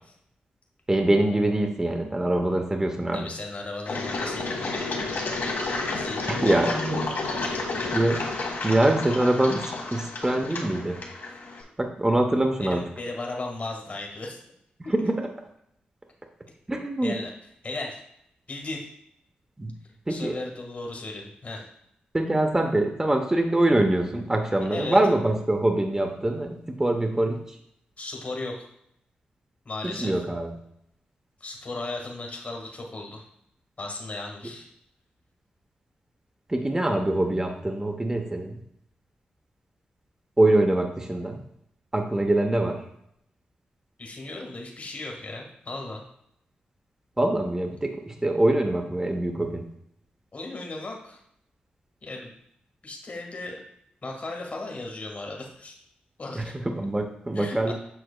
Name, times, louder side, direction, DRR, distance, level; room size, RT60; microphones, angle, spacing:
voice 1, 0.9-3.3 6.3-7.1 7.8-8.2 8.6-11.0 11.8-12.8 14.9-15.1 16.7-17.1 19.6-19.7 20.1-20.3 22.1-27.6 29.8-30.5 36.5-38.6 40.4-41.4 41.9-42.8 47.2-49.7 56.3-57.7, right 1 dB, 20° right, 3 dB, 0.8 m, -24 dB
voice 2, 3.1-5.3 5.6-6.2 7.2-7.8 12.6-14.4 14.8-14.9 17.0-17.3 17.6-18.0 18.5-18.9 20.1-21.6 24.7-25.0 28.0-28.7 29.6-30.2 31.4-33.2 33.8-34.7 44.0-46.0 50.3-51.2 52.0-52.3 52.8-53.6 54.0-55.8 56.2-56.5 57.3-57.7, left 2 dB, 45° left, 1 dB, 1.5 m, -36 dB
Engine, 3.9-11.6, left 3 dB, 75° left, 1.6 m, -31 dB
7.8 x 5.9 x 2.2 m, 0.76 s
cardioid pair, 65°, 3 cm